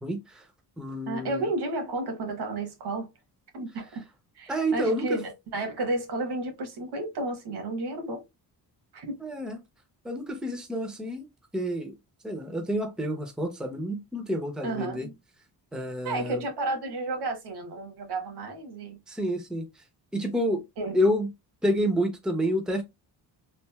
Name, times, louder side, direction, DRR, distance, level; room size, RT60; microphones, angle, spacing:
voice 1, 0.0-0.4 0.8-1.5 4.5-5.2 9.2-9.6 10.0-11.3 11.5-11.9 12.2-15.1 15.7-16.4 19.1-19.6 20.1-20.6 20.9-21.3 21.6-22.8, equal, ahead, 0.6 m, -28 dB
voice 2, 1.1-3.1 3.5-4.0 4.3-8.2 8.9-9.2 14.6-15.1 16.0-19.0 20.8-21.0, right 2 dB, 70° right, 1.2 m, -32 dB
3.2 x 2.4 x 2.2 m
cardioid pair, 110°, 40 cm